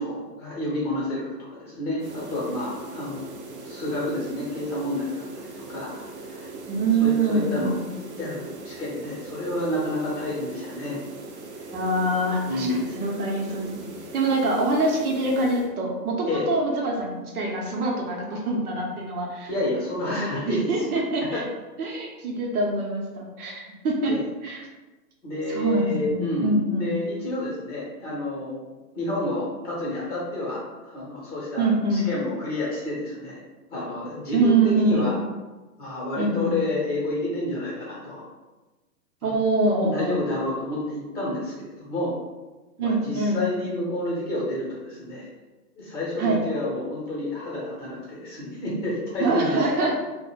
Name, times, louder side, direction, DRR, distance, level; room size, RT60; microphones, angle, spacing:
voice 1, 0.0-5.9 6.3-6.5 7.0-7.8 8.2-11.0 11.6-11.7 12.5-12.9 16.3-16.5 19.5-21.0 21.3-21.4 24.1-24.2 25.2-28.6 28.9-33.4 33.7-35.2 35.8-38.2 39.2-39.3 39.8-42.1 42.8-45.3 45.8-49.6, left 1 dB, 20° left, -6 dB, 0.8 m, -29 dB
sound 1, 2.0-15.7, right 2 dB, 45° right, 0.4 m, -40 dB
voice 2, 6.7-7.7 11.7-13.9 14.1-19.5 20.1-21.5 21.8-24.7 25.5-26.9 31.6-32.1 34.3-35.1 36.2-36.5 39.2-40.1 42.8-43.4 46.2-46.4 49.2-50.0, right 2 dB, 60° right, -1 dB, 0.8 m, -24 dB
2.4 x 2.2 x 3.1 m, 1.2 s
hypercardioid pair, 135°, 49 cm